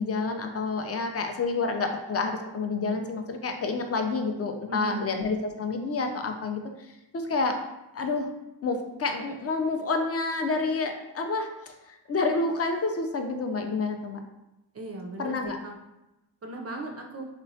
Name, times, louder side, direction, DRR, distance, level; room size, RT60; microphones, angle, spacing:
voice 1, 0.0-6.6 7.1-7.6 7.9-8.3 8.6-11.7 12.1-14.2 15.2-15.6, left 3 dB, 35° left, 5 dB, 0.4 m, -28 dB
voice 2, 4.7-5.1 14.7-15.8 16.4-17.3, right 2 dB, 35° right, 1 dB, 0.4 m, -37 dB
2.9 x 2.1 x 2.7 m, 0.95 s
cardioid pair, 45°, 44 cm